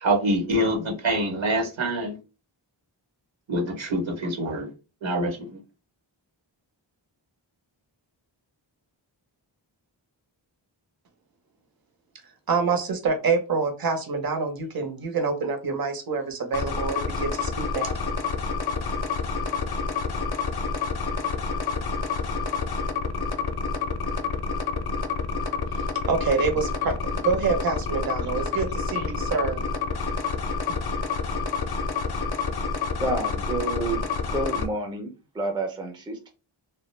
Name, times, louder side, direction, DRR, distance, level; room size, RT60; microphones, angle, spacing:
voice 1, 0.0-2.1 3.5-4.7 5.0-5.5, right 1 dB, 70° right, 2 dB, 1.0 m, -25 dB
voice 2, 12.5-18.0 25.7-29.6, right 4 dB, 50° right, 6 dB, 0.7 m, -27 dB
sound 1, 16.5-34.7, left 4 dB, 55° left, 0.5 m, -28 dB
voice 3, 33.0-34.1 34.3-35.1 35.4-36.3, right 2 dB, 10° right, 5 dB, 0.4 m, -29 dB
2.3 x 2.0 x 3.1 m, 0.31 s
wide cardioid pair, 80°, 47 cm